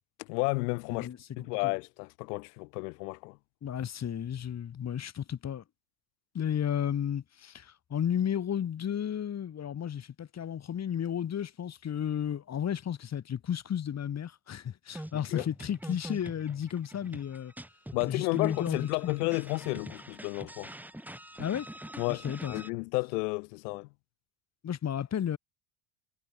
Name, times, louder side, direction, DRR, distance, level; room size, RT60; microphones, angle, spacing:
voice 1, 0.2-1.1 1.4-3.4 15.1-15.5 17.9-20.7 22.0-23.9, left 27 dB, 85° left, 1.7 m, -32 dB
voice 2, 0.9-1.7 3.6-5.6 6.3-17.5 18.1-19.1 21.4-21.7 22.1-22.6 24.6-25.4, left 9 dB, 35° left, 2.4 m, -33 dB
sound 1, 14.9-22.7, right 1 dB, 5° right, 6.4 m, -44 dB
supercardioid pair, 105°, 46 cm